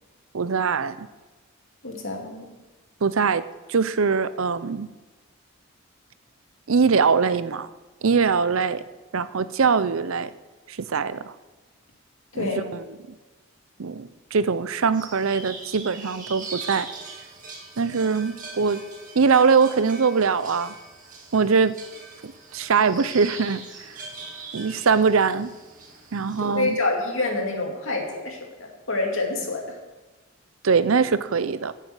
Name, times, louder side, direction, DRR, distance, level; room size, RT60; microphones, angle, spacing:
voice 1, 0.3-1.1 3.0-3.4 3.7-4.9 6.7-7.7 8.0-8.8 9.1-10.3 10.7-11.3 12.3-12.8 13.8-16.9 17.8-18.8 19.1-20.7 21.3-21.8 22.2-23.9 24.5-25.5 26.1-26.8 30.6-31.7, right 5 dB, 70° right, 14 dB, 0.6 m, -22 dB
voice 2, 1.8-2.5 12.3-12.7 26.4-29.8, left 2 dB, 65° left, 1 dB, 2.5 m, -27 dB
sound 1, 14.9-26.6, right 4 dB, 35° right, 2.0 m, -41 dB
10.5 x 7.7 x 8.1 m, 1.2 s
head